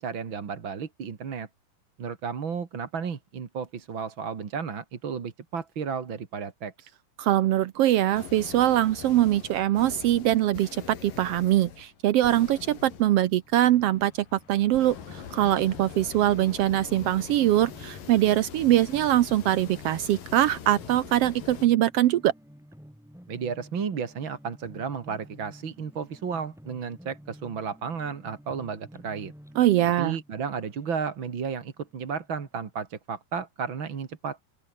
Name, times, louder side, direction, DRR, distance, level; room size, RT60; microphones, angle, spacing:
voice 1, 0.0-1.5 2.0-6.9 23.3-29.3 30.0-34.4, right 6 dB, 40° right, 2.6 m, -33 dB
voice 2, 7.2-22.3 29.6-30.2, right 13 dB, 85° right, 1.3 m, -23 dB
sound 1, 8.2-21.7, left 8 dB, 90° left, 4.5 m, -43 dB
sound 2, 13.4-32.5, equal, ahead, 3.3 m, -52 dB
open air
omnidirectional pair, 3.8 m